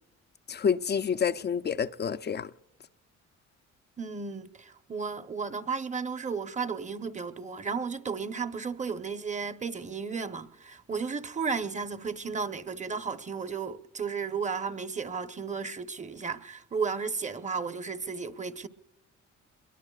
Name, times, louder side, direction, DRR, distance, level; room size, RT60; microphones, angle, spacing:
voice 1, 0.5-2.5, left 7 dB, 35° left, 0.5 m, -28 dB
voice 2, 4.0-18.7, right 5 dB, 25° right, 0.9 m, -34 dB
27.0 x 22.0 x 2.4 m
cardioid pair, 90°, 30 cm